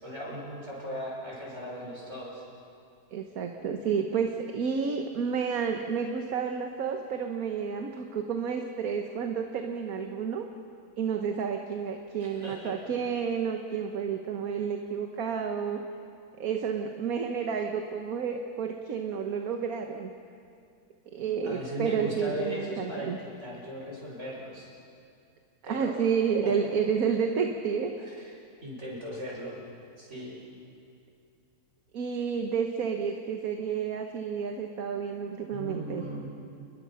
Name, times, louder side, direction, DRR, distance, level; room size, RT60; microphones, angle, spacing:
voice 1, 0.0-2.4 12.3-12.8 21.4-24.7 25.6-26.0 26.4-26.7 28.0-28.3 28.6-29.6 30.0-30.4 35.5-36.3, equal, 45° right, -3 dB, 6.4 m, -37 dB
voice 2, 3.1-10.5 11.0-15.8 16.4-20.1 21.1-23.2 25.7-27.9 31.9-36.0, right 6 dB, 65° right, 4 dB, 1.5 m, -30 dB
29.5 x 21.5 x 5.7 m, 2.4 s
omnidirectional pair, 1.7 m